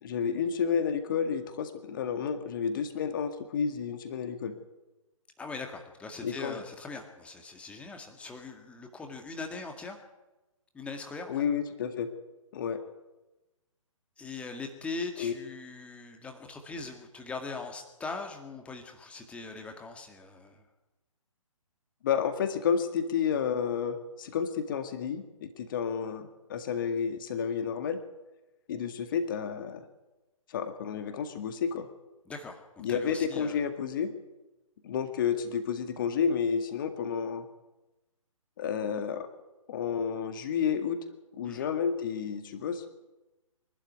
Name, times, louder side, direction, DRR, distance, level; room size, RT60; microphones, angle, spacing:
voice 1, 0.0-4.6 6.2-6.6 11.3-12.1 12.5-12.8 15.2-15.3 22.0-28.0 28.7-29.8 30.5-31.9 32.8-34.1 34.8-37.5 38.6-39.3 39.7-41.0 41.4-42.9, left 7 dB, 35° left, 8 dB, 1.9 m, -31 dB
voice 2, 5.4-10.0 10.7-11.4 14.2-20.6 32.3-32.6 32.9-33.6 41.4-41.7, left 3 dB, 5° left, 4 dB, 2.0 m, -41 dB
24.0 x 12.5 x 9.5 m, 1.1 s
figure-of-eight pair, 135°, 18 cm